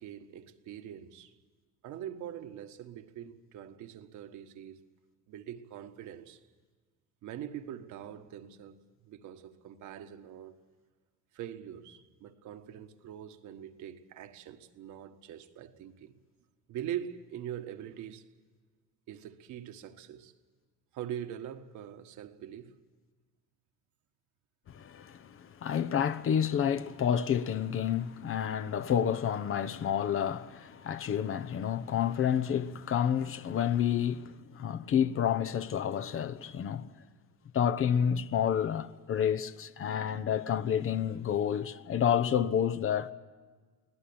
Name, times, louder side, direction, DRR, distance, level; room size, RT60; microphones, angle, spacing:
voice 1, 0.0-1.3 1.8-4.8 5.3-6.4 7.2-10.6 11.3-16.1 16.7-18.2 19.1-20.3 20.9-22.7, right 10 dB, 60° right, 1.6 m, -43 dB
voice 2, 24.7-36.9 37.5-43.1, left 9 dB, 40° left, 0.9 m, -29 dB
24.5 x 17.0 x 8.7 m
cardioid pair, 120°, 32 cm